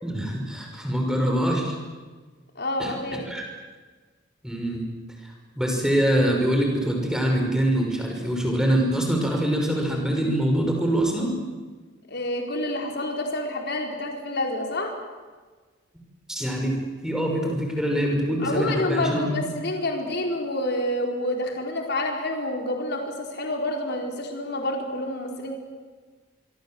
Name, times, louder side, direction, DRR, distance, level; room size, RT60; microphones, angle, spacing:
voice 1, 0.0-1.7 2.8-2.9 3.3-3.4 4.4-4.8 5.6-11.3 16.3-16.8 17.0-19.5, right 1 dB, 5° right, 1 dB, 5.9 m, -24 dB
voice 2, 2.6-3.2 12.1-14.9 18.4-25.6, left 1 dB, 55° left, 2 dB, 4.5 m, -28 dB
26.0 x 23.5 x 7.9 m, 1.4 s
head